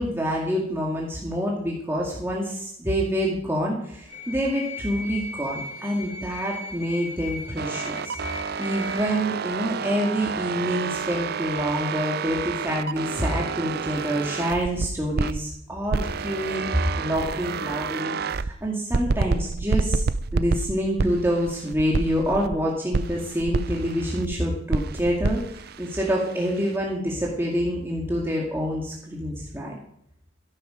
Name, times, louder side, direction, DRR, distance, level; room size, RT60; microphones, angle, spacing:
voice 1, 0.0-8.2 8.6-16.7 17.0-20.0 20.3-29.8, equal, 15° right, -3 dB, 2.2 m, -27 dB
sound 1, 4.1-9.1, left 2 dB, 80° left, 5.9 m, -37 dB
sound 2, 7.6-15.4 15.9-18.5 18.9-22.6 22.9-24.4 24.7-26.8, right 4 dB, 55° right, 0.5 m, -29 dB
14.0 x 11.5 x 5.0 m, 0.73 s
head